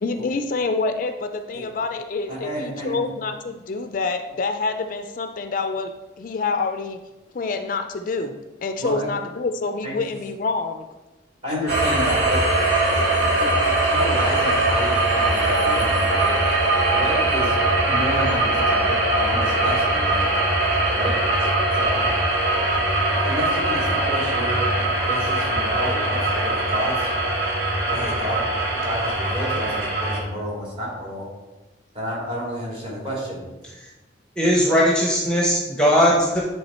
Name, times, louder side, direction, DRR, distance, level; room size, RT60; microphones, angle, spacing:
voice 1, 0.0-7.0 7.3-10.8, left 3 dB, 45° left, 7 dB, 0.4 m, -27 dB
voice 2, 2.3-3.0 8.8-9.1 9.8-9.9 11.4-12.4 12.9-16.4 16.9-17.6 17.8-20.4 20.9-21.5 21.7-22.1 23.2-24.7 25.1-27.1 27.9-31.3 31.9-33.4, equal, 30° right, -4 dB, 2.3 m, -30 dB
sound 1, 11.7-30.2, right 2 dB, 90° right, 1.7 m, -21 dB
sound 2, 18.7-22.4 22.7-22.8, left 5 dB, 55° right, 1.1 m, -35 dB
voice 3, 34.4-36.4, equal, 5° left, -3 dB, 0.8 m, -18 dB
10.0 x 3.4 x 4.2 m, 1.1 s
head